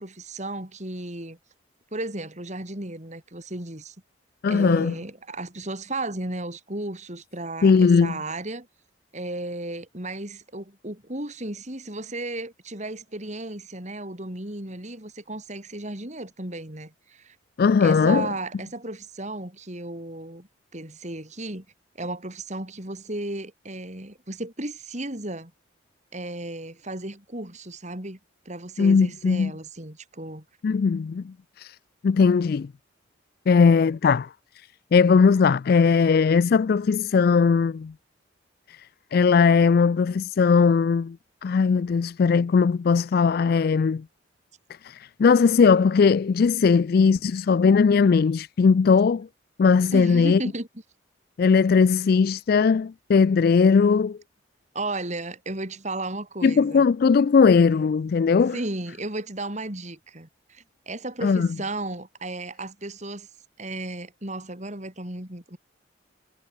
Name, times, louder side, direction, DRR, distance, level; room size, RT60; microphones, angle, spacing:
voice 1, 0.0-1.4 1.9-4.0 4.5-8.7 9.1-17.4 17.8-21.7 22.0-25.5 26.1-28.2 28.5-30.4 49.9-50.7 54.7-56.8 58.5-63.3 63.6-65.6, right 2 dB, 35° right, 4.1 m, -34 dB
voice 2, 4.4-4.9 7.6-8.2 17.6-18.3 28.8-29.5 30.6-31.8 32.0-32.7 33.5-34.3 34.6-37.9 38.7-38.8 39.1-41.2 41.4-44.0 44.8-49.3 49.6-50.4 51.4-54.2 56.4-58.6 61.2-61.5, left 5 dB, 50° left, 0.3 m, -19 dB
head